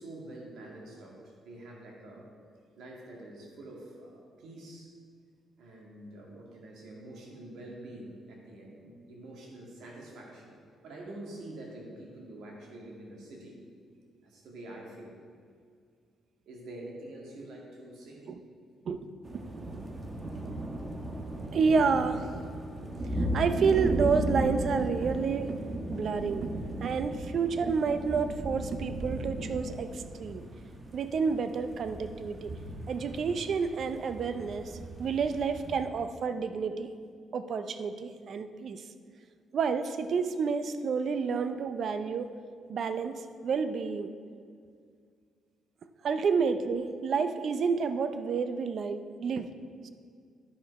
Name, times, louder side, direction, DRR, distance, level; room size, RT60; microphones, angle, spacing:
voice 1, 0.0-2.3 2.8-4.9 5.6-13.6 14.2-15.2 16.5-18.3, right 1 dB, 75° right, -2 dB, 2.0 m, -46 dB
voice 2, 18.9-19.4 21.5-22.3 23.2-25.6 25.9-26.5 26.8-30.5 30.9-32.5 32.9-36.9 37.3-38.8 39.5-42.3 42.7-44.1 46.0-49.5, right 5 dB, 60° right, 10 dB, 0.5 m, -29 dB
sound 1, 19.2-35.8, right 1 dB, 25° right, 1.2 m, -36 dB
11.0 x 5.3 x 4.7 m, 2.1 s
cardioid pair, 90°, 0 cm